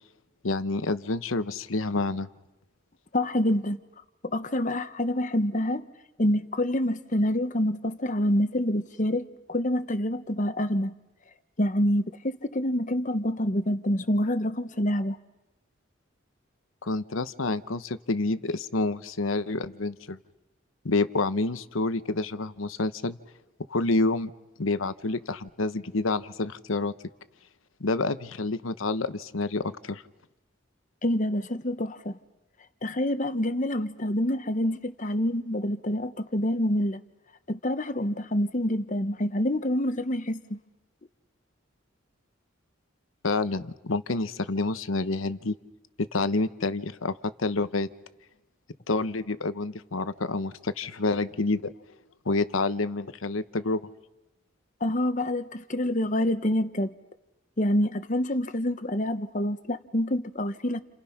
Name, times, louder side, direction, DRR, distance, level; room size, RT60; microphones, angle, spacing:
voice 1, 0.4-2.3 16.8-20.2 20.8-23.2 23.7-24.3 24.6-26.9 27.8-30.0 43.2-45.5 46.1-47.9 48.9-51.6 52.3-53.9, left 3 dB, 85° left, 1.0 m, -28 dB
voice 2, 3.1-3.8 4.2-5.9 6.2-10.9 11.6-15.2 31.0-32.2 32.8-37.0 37.5-40.6 54.8-56.9 57.6-60.8, left 1 dB, 40° left, 1.2 m, -27 dB
30.0 x 30.0 x 5.9 m
head